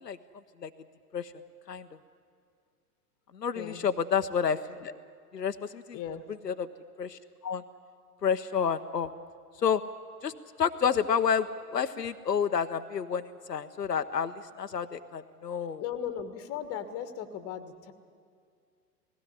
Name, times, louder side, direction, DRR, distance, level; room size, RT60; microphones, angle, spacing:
voice 1, 3.4-4.9 5.3-6.0 6.5-6.7 7.0-7.6 8.2-9.1 9.6-9.8 10.2-10.3 10.6-11.5 11.7-13.2 13.5-14.3 14.6-15.8, left 7 dB, 85° left, 9 dB, 0.8 m, -29 dB
voice 2, 5.9-6.3 15.8-17.9, left 9 dB, 30° left, 11 dB, 1.5 m, -37 dB
18.5 x 16.0 x 9.7 m, 2.2 s
figure-of-eight pair, 100°, 48 cm